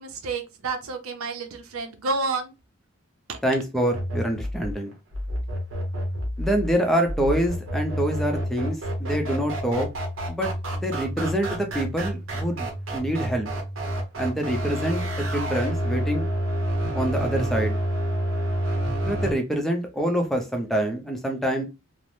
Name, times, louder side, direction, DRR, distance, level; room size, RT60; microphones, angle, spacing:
voice 1, 0.0-2.5 3.3-3.4, right 3 dB, 90° right, 0.6 m, -30 dB
voice 2, 3.4-4.9 6.4-9.9 10.3-13.5 14.2-15.0 15.3-16.3 16.9-17.7 19.0-21.6, right 1 dB, ahead, 0.5 m, -26 dB
sound 1, 3.9-19.3, equal, 70° right, 0.9 m, -29 dB
3.2 x 2.0 x 2.6 m
head